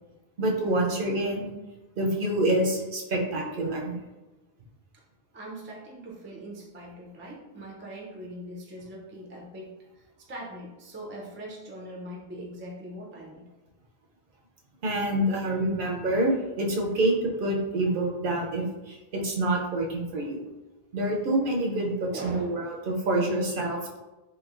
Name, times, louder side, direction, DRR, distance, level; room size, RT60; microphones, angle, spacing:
voice 1, 0.4-1.5 2.0-3.9 14.8-20.4 20.9-24.0, right 1 dB, 60° right, 0 dB, 0.7 m, -27 dB
voice 2, 5.3-13.5 17.9-18.0 22.1-22.6, right 1 dB, 20° right, -2 dB, 0.3 m, -41 dB
3.1 x 2.7 x 2.4 m, 1.1 s
omnidirectional pair, 1.0 m